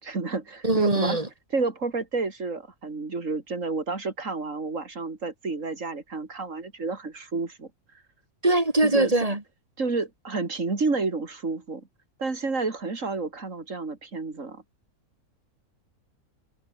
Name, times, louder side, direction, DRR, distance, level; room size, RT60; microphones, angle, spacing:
voice 1, 0.0-7.7 8.8-9.1 9.8-11.9 12.2-14.6, right 3 dB, 60° right, 3.4 m, -30 dB
voice 2, 0.6-1.3 8.4-9.4, right 2 dB, 25° right, 3.6 m, -22 dB
omnidirectional pair, 1.6 m